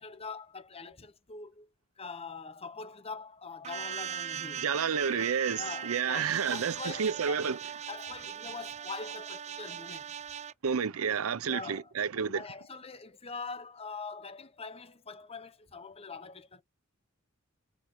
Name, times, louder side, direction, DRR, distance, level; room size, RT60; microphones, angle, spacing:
voice 1, 0.0-1.7 2.0-4.7 5.5-7.6 7.9-10.1 11.4-11.9 12.2-16.6, left 4 dB, 30° left, 1.0 m, -43 dB
sound 1, 3.6-10.5, right 8 dB, 30° right, 0.4 m, -39 dB
voice 2, 4.6-7.6 10.6-12.4, right 6 dB, 90° right, 0.6 m, -30 dB
6.4 x 4.2 x 4.6 m
head